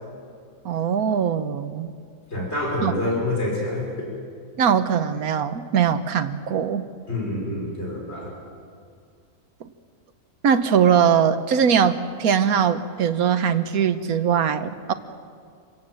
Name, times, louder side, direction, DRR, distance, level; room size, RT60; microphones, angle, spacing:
voice 1, 0.6-1.9 2.8-3.2 4.6-6.8 9.6-9.7 10.4-14.9, right 7 dB, 80° right, 11 dB, 1.5 m, -21 dB
voice 2, 2.3-3.9 7.1-8.3, left 1 dB, 45° left, -2 dB, 5.4 m, -27 dB
27.5 x 17.5 x 7.7 m, 2.2 s
omnidirectional pair, 1.5 m